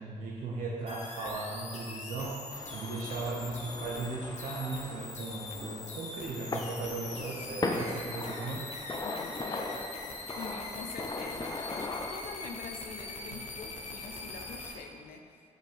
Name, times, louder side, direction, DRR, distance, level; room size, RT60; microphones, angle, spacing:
voice 1, 0.0-8.8, right 3 dB, 80° right, -4 dB, 0.7 m, -37 dB
sound 1, 0.9-14.8, left 3 dB, 55° left, 0.9 m, -43 dB
sound 2, 2.5-12.1, left 2 dB, 25° left, 0.5 m, -39 dB
voice 2, 9.0-9.8 10.4-15.5, left 5 dB, 90° left, 5 dB, 0.5 m, -45 dB
5.3 x 3.8 x 5.1 m, 2.3 s
cardioid pair, 60°, 14 cm